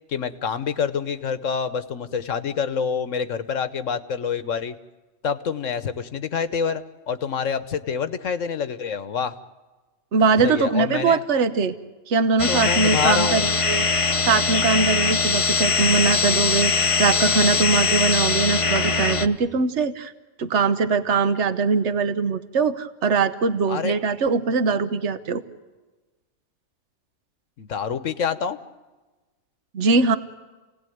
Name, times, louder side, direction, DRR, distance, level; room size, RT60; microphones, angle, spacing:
voice 1, 0.1-4.8 5.2-9.4 10.4-11.2 12.5-13.5 23.7-23.9 27.6-28.6, left 6 dB, 70° left, 12 dB, 1.4 m, -27 dB
voice 2, 10.1-11.7 12.1-13.4 13.7-13.9 14.3-20.1 20.4-25.4 29.7-30.2, right 4 dB, 60° right, 12 dB, 1.3 m, -21 dB
sound 1, 12.4-19.3, left 4 dB, 25° left, 0.9 m, -21 dB
29.0 x 18.0 x 9.3 m, 1.2 s
omnidirectional pair, 1.4 m